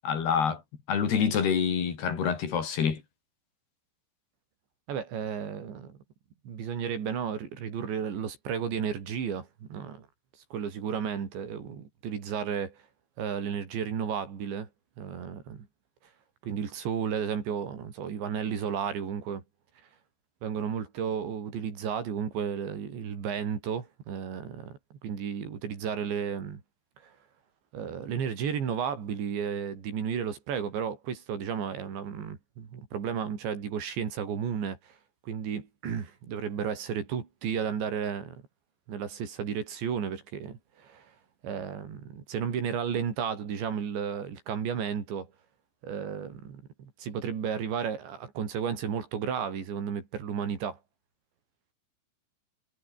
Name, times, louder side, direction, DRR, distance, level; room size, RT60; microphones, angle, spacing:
voice 1, 0.0-0.6 0.9-3.0, left 7 dB, 65° left, 5.9 m, -26 dB
voice 2, 4.9-6.0 6.4-10.1 10.5-12.8 13.2-14.7 15.0-15.7 16.4-19.4 20.4-26.6 27.0-27.1 27.7-35.0 35.2-38.4 38.9-41.1 41.4-45.3 45.8-50.8, right 7 dB, 85° right, 6.3 m, -33 dB
omnidirectional pair, 5.0 m